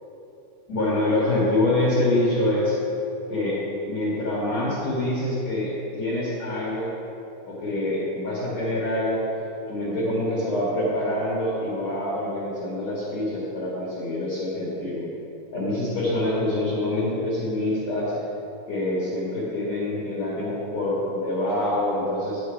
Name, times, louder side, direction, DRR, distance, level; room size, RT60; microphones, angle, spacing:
voice 1, 0.7-2.8 3.3-3.6 3.9-6.9 7.4-9.2 9.7-15.1 15.5-18.1 18.7-22.4, left 1 dB, 50° left, -8 dB, 2.2 m, -25 dB
10.0 x 8.5 x 4.7 m, 2.9 s
omnidirectional pair, 5.5 m